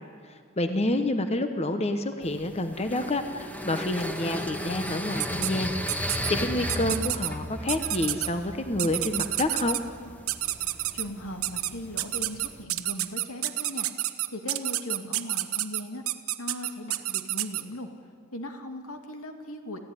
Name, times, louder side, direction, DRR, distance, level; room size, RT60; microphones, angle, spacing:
voice 1, 0.2-9.8, left 1 dB, 30° left, 8 dB, 1.0 m, -28 dB
sound 1, 2.2-12.6, left 1 dB, 10° left, 1.4 m, -36 dB
sound 2, 5.2-5.5 5.9-6.3 6.7-7.3 7.7-8.3 8.8-9.8 10.3-11.0 11.4-11.7 12.0-17.6, right 15 dB, 85° right, 1.1 m, -29 dB
voice 2, 10.9-16.0 16.4-17.9 18.3-19.8, left 1 dB, 80° left, 5 dB, 2.4 m, -39 dB
29.5 x 15.5 x 9.8 m, 2.1 s
head